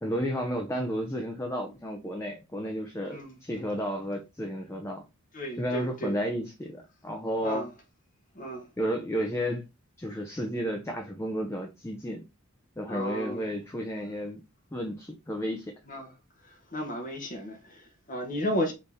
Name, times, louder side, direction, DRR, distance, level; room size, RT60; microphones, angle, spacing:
voice 1, 0.0-5.0 5.6-7.7 8.8-9.6 10.0-12.2 12.8-14.4 14.7-15.7, equal, 10° left, 0.5 m, -32 dB
voice 2, 5.3-6.2 7.4-7.7 8.3-8.7 12.9-13.5 15.9-16.1 16.5-18.7, equal, 35° left, 1.0 m, -34 dB
5.2 x 2.7 x 3.4 m
head